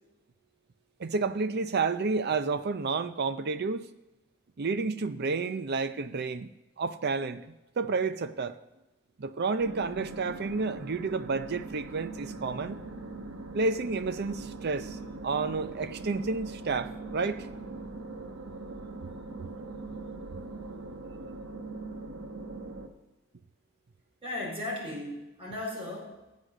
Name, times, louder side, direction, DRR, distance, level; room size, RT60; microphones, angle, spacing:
voice 1, 1.0-3.9 4.6-6.5 6.8-8.6 9.2-12.8 13.5-17.5, right 4 dB, 50° right, 0.5 m, -30 dB
sound 1, 9.6-22.9, right 3 dB, 70° right, 1.2 m, -41 dB
voice 2, 24.2-26.3, left 1 dB, 30° right, 4.6 m, -36 dB
15.0 x 8.3 x 6.4 m
head